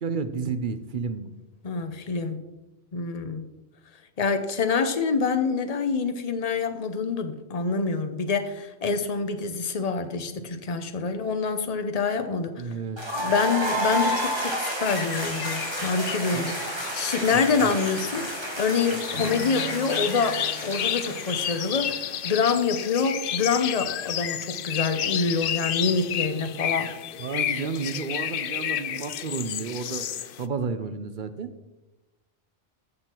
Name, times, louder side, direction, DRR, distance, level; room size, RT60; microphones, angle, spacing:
voice 1, 0.0-1.3 12.6-13.0 16.3-16.5 17.3-17.8 27.2-30.1 30.4-31.5, right 5 dB, 50° right, 10 dB, 0.8 m, -31 dB
voice 2, 1.6-2.4 2.9-3.5 4.2-12.6 13.2-16.7 16.9-22.0 22.2-26.9, left 5 dB, 35° left, 8 dB, 0.8 m, -26 dB
sound 1, 13.0-22.7, right 1 dB, 20° right, 2.2 m, -31 dB
sound 2, 14.9-30.5, left 10 dB, 60° left, 0.6 m, -32 dB
Acoustic guitar / Strum, 19.1-23.4, right 3 dB, 85° left, 2.7 m, -42 dB
14.0 x 6.6 x 4.5 m, 1.0 s
omnidirectional pair, 1.2 m